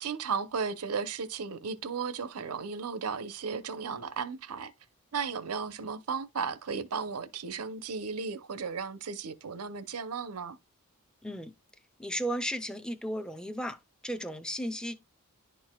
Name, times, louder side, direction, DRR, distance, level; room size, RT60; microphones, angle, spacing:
voice 1, 0.0-4.7 5.1-10.6, right 5 dB, 85° right, 0.7 m, -35 dB
voice 2, 12.0-15.0, equal, 5° left, 0.5 m, -35 dB
11.0 x 4.7 x 2.2 m
head